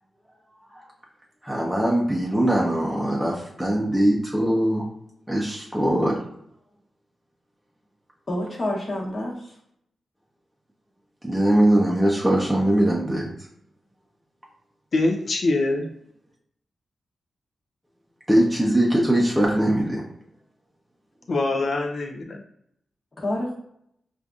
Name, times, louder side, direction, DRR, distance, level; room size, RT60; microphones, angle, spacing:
voice 1, 1.4-4.9 5.3-6.2 11.2-13.3 18.3-20.0, right 1 dB, 5° right, -4 dB, 0.7 m, -21 dB
voice 2, 8.3-9.5 23.2-23.6, left 1 dB, 35° left, -2 dB, 1.2 m, -28 dB
voice 3, 14.9-15.9 21.3-22.4, left 2 dB, 55° left, 3 dB, 0.5 m, -24 dB
5.1 x 2.5 x 2.3 m, 0.72 s
cardioid pair, 90°, 0 cm